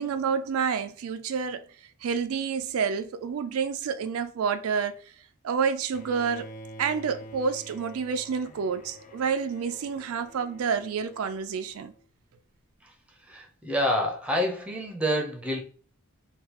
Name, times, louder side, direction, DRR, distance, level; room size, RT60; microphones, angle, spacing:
voice 1, 0.0-1.7 2.0-5.0 5.4-6.5 6.8-11.9, right 6 dB, 75° right, 0.4 m, -29 dB
Bowed string instrument, 5.9-12.0, right 1 dB, 35° left, 0.5 m, -47 dB
voice 2, 13.2-15.6, equal, 5° right, 0.6 m, -28 dB
3.7 x 2.3 x 2.9 m
head